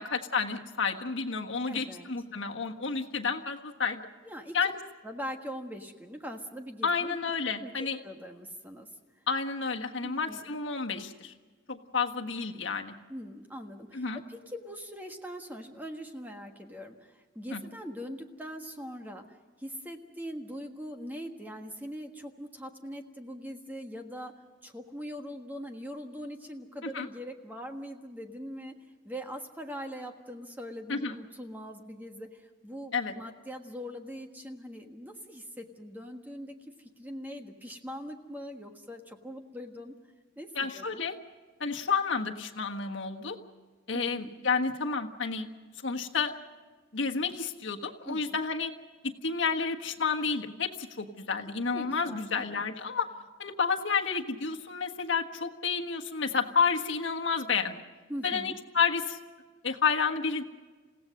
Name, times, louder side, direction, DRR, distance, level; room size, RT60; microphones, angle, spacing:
voice 1, 0.0-4.0 4.5-4.8 6.8-8.0 9.3-11.3 11.7-12.9 13.9-14.2 17.5-17.6 26.9-27.1 30.9-31.1 32.9-33.1 40.5-41.2 41.6-43.4 43.9-45.5 45.8-46.3 46.9-48.7 49.2-53.1 53.4-57.8 58.2-59.2 59.6-60.4, left 5 dB, 70° left, 3 dB, 1.5 m, -30 dB
voice 2, 1.7-2.1 4.2-4.7 5.0-7.2 7.6-8.9 9.1-9.2 10.0-10.5 13.1-28.7 29.0-39.9 40.4-41.0 43.9-44.3 48.0-48.2 51.7-52.6 58.1-58.6, equal, 10° right, 4 dB, 1.5 m, -42 dB
29.0 x 16.5 x 6.5 m, 1.4 s
head